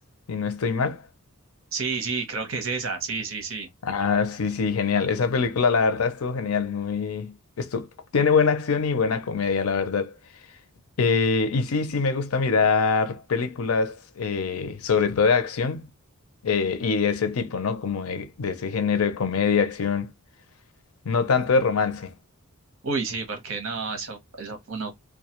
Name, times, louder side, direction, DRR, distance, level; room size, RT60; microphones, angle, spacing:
voice 1, 0.3-1.0 3.8-7.9 8.1-10.2 11.0-15.9 16.4-20.1 21.1-22.1, left 5 dB, 85° left, 0.6 m, -24 dB
voice 2, 1.7-3.7 22.8-24.9, right 4 dB, 65° right, 0.9 m, -30 dB
2.3 x 2.2 x 2.8 m
head